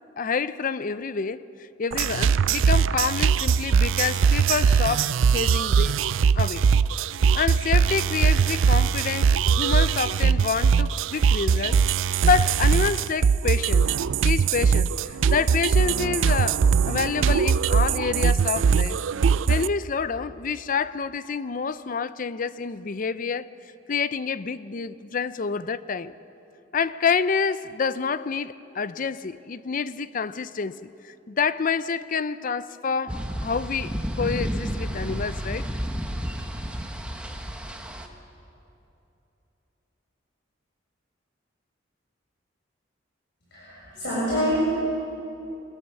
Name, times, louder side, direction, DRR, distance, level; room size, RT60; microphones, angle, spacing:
voice 1, 0.2-1.4 1.8-6.0 6.3-6.7 7.3-13.9 14.2-19.0 19.5-23.5 23.9-26.1 26.7-30.8 31.0-33.2 33.4-35.7, left 5 dB, 45° left, 15 dB, 0.5 m, -28 dB
sound 1, 1.9-19.7, right 6 dB, 80° right, 0.4 m, -21 dB
sound 2, 33.1-38.1, equal, 5° right, 1.2 m, -31 dB
voice 2, 43.5-44.6, equal, 65° left, -8 dB, 6.6 m, -26 dB
23.5 x 16.5 x 7.1 m, 2.9 s
head